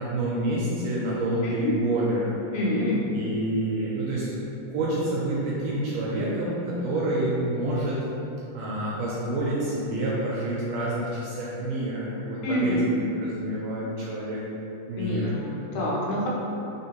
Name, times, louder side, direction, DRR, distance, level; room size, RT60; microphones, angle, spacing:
voice 1, 0.0-2.3 3.1-4.3 4.7-8.0 8.5-14.4 14.9-15.3, right 1 dB, 80° right, -6 dB, 1.6 m, -28 dB
voice 2, 1.4-1.7 2.5-3.0 12.4-12.9 15.0-16.3, left 1 dB, 85° left, -5 dB, 2.2 m, -27 dB
4.1 x 3.7 x 2.9 m, 2.9 s
omnidirectional pair, 3.4 m